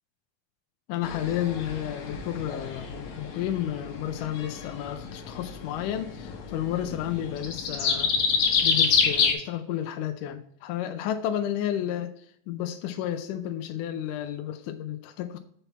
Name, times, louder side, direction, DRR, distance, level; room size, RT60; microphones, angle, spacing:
voice 1, 0.9-8.1 8.6-15.4, left 11 dB, 80° left, 7 dB, 1.9 m, -32 dB
sound 1, 1.0-9.3, left 5 dB, 65° left, 2.1 m, -28 dB
6.9 x 5.7 x 4.2 m, 0.66 s
omnidirectional pair, 4.1 m